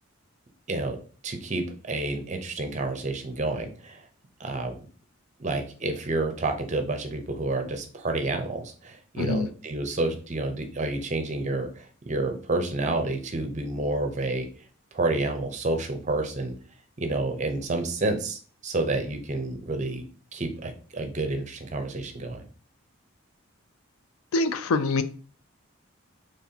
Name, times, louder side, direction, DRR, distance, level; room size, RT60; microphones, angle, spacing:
voice 1, 1.2-4.0 4.4-4.7 5.4-14.5 14.9-16.5 17.0-20.0 20.3-22.4, right 2 dB, 35° right, 0.6 m, -29 dB
voice 2, 9.2-9.5 24.3-25.0, left 3 dB, 85° left, 0.4 m, -24 dB
4.0 x 3.3 x 2.8 m
head